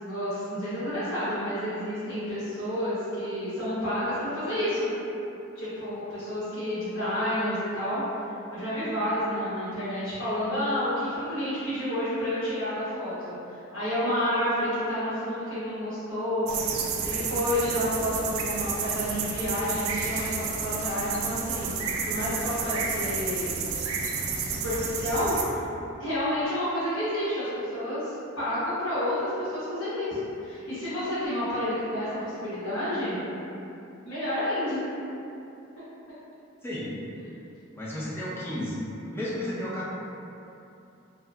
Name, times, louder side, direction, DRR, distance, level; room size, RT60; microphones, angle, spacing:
voice 1, 0.0-4.9 5.5-8.0 8.5-16.8 17.0-23.6 24.3-25.7 26.0-33.2 34.0-34.8, left 1 dB, 85° left, -16 dB, 1.2 m, -30 dB
sound 1, 16.5-25.4, right 5 dB, 85° right, 0.4 m, -31 dB
voice 2, 36.6-37.0 37.7-38.8 39.1-39.9, left 1 dB, 10° left, -8 dB, 0.5 m, -32 dB
2.8 x 2.2 x 3.3 m, 2.8 s
head